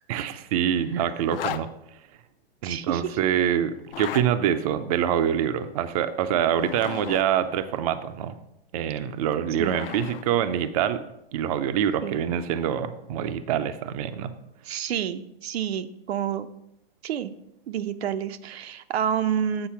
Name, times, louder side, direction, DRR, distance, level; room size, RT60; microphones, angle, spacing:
voice 1, 0.1-1.7 2.6-8.3 8.7-11.0 11.3-14.3, right 9 dB, 40° right, 10 dB, 0.4 m, -25 dB
Zipper (clothing), 1.2-1.6 3.8-4.3 6.4-7.3 9.1-10.2, left 11 dB, 65° left, 0.6 m, -35 dB
voice 2, 2.6-3.2 9.6-9.8 12.0-12.2 14.6-16.5 17.0-17.3 17.7-19.7, right 9 dB, 80° right, 10 dB, 0.6 m, -29 dB
7.6 x 4.0 x 5.7 m, 0.82 s
hypercardioid pair, 140°, 31 cm